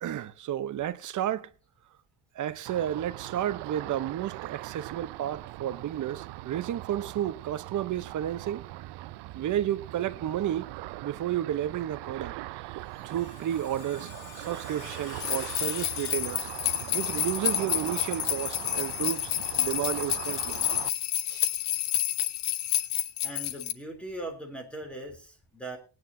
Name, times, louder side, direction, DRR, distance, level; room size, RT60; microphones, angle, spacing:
voice 1, 0.0-1.5 2.3-8.6 9.3-10.7 11.0-12.8 13.0-16.5 16.9-19.3 19.6-20.6 21.3-21.5, right 11 dB, 50° right, 0.8 m, -32 dB
Ocean, 2.7-20.9, right 18 dB, 90° right, 0.6 m, -41 dB
Screech, 12.6-16.9, left 6 dB, 45° left, 2.2 m, -46 dB
sound 1, 15.2-23.7, left 13 dB, 80° left, 1.0 m, -29 dB
voice 2, 23.2-25.8, right 1 dB, 5° left, 3.2 m, -40 dB
19.5 x 9.8 x 2.7 m
cardioid pair, 155°, 40 cm